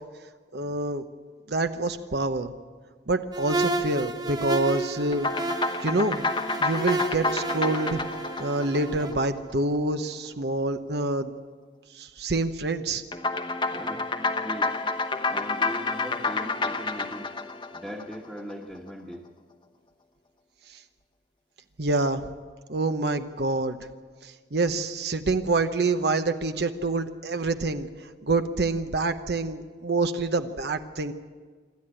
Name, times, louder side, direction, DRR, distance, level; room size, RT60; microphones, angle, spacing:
voice 1, 0.5-1.0 1.5-2.5 3.1-5.3 5.8-6.2 6.6-8.0 8.4-11.3 11.9-13.0 20.7-20.8 21.8-22.3 22.7-23.8 24.2-31.1, right 2 dB, 65° right, 8 dB, 0.9 m, -27 dB
sound 1, 3.3-9.1, right 3 dB, 20° right, 1.1 m, -32 dB
sound 2, 5.1-9.8 13.1-18.5, left 3 dB, 25° left, 1.0 m, -29 dB
voice 2, 13.7-14.1 14.4-14.7 15.3-17.3 17.7-19.3, equal, 5° right, -3 dB, 1.4 m, -39 dB
26.5 x 13.0 x 9.0 m, 1.5 s
head